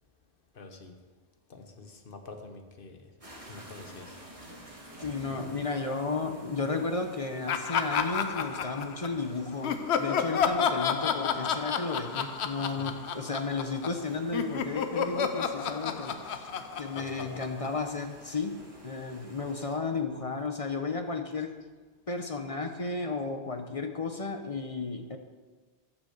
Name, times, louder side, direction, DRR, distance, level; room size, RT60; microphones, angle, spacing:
voice 1, 0.5-1.0 1.5-3.1 3.4-4.2 5.3-5.4 12.7-12.9 16.9-17.4, left 3 dB, 55° left, 5 dB, 1.3 m, -46 dB
sound 1, 3.2-19.8, right 1 dB, 30° right, 2.4 m, -51 dB
voice 2, 5.0-16.5 16.8-21.6 22.1-25.2, left 3 dB, 35° left, 5 dB, 0.8 m, -33 dB
Laughter, 7.5-9.2 9.6-14.0 14.3-17.9, left 7 dB, 80° left, 1.0 m, -30 dB
12.0 x 6.1 x 6.5 m, 1.3 s
omnidirectional pair, 1.1 m